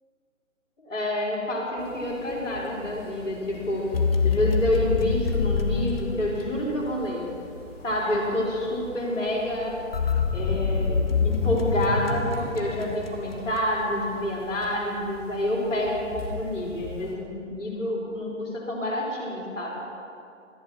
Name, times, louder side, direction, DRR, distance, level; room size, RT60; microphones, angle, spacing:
voice 1, 0.8-3.9 4.2-7.3 7.8-9.8 10.3-19.7, left 1 dB, 65° left, -3 dB, 3.7 m, -28 dB
sound 1, 1.8-17.1, left 2 dB, 5° left, 0.8 m, -43 dB
sound 2, 3.9-6.9 9.9-13.4, left 5 dB, 50° left, 1.0 m, -25 dB
14.0 x 9.5 x 5.9 m, 2.6 s
figure-of-eight pair, 140°, 39 cm